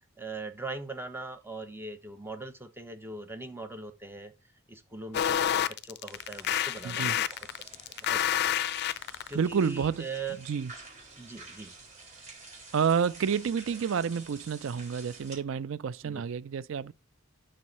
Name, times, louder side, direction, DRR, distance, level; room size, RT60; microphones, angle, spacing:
voice 1, 0.2-4.3 4.7-7.7 8.0-8.4 9.3-10.4 11.2-11.7 16.0-16.2, right 3 dB, 10° right, 0.7 m, -41 dB
sound 1, 5.1-9.3, left 10 dB, 55° left, 0.4 m, -28 dB
sound 2, 6.0-15.4, right 3 dB, 40° right, 4.0 m, -50 dB
voice 2, 6.8-7.2 9.3-10.1 10.4-10.7 12.7-16.9, right 6 dB, 65° right, 0.4 m, -29 dB
6.3 x 4.7 x 4.0 m
head